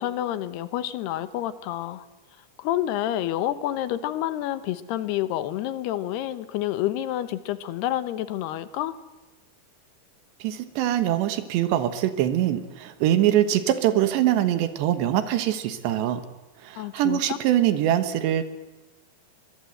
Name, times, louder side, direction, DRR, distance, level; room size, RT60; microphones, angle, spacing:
voice 1, 0.0-2.1 2.6-9.0 16.8-17.4, left 13 dB, 75° left, 13 dB, 3.0 m, -28 dB
voice 2, 10.4-16.2 16.6-18.5, right 12 dB, 85° right, 10 dB, 3.5 m, -23 dB
24.5 x 22.0 x 7.9 m, 1.1 s
omnidirectional pair, 4.9 m